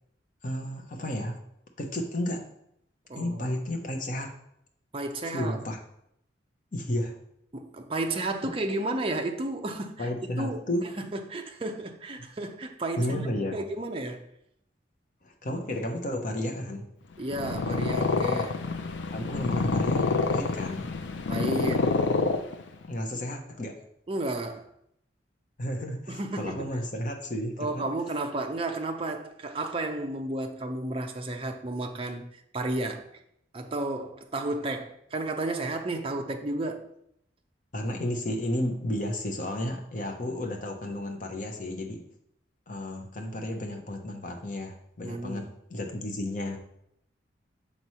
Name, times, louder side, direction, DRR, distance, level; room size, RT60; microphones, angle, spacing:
voice 1, 0.4-1.4 1.8-2.5 3.2-4.3 5.3-5.8 6.7-7.2 8.4-8.5 10.0-11.0 13.0-13.6 15.2-16.9 19.1-20.9 22.9-23.8 25.6-27.9 37.7-42.0 42.7-46.6, left 1 dB, 45° left, 0.8 m, -32 dB
voice 2, 3.1-3.6 4.9-5.6 7.5-10.1 10.4-10.7 11.0-14.3 17.2-18.6 21.3-21.9 24.1-24.7 26.1-26.6 27.6-33.1 33.5-36.9 45.0-45.5, right 2 dB, 30° right, 0.6 m, -32 dB
Purr, 17.2-22.9, left 4 dB, 70° left, 0.5 m, -27 dB
6.8 x 3.1 x 5.5 m
head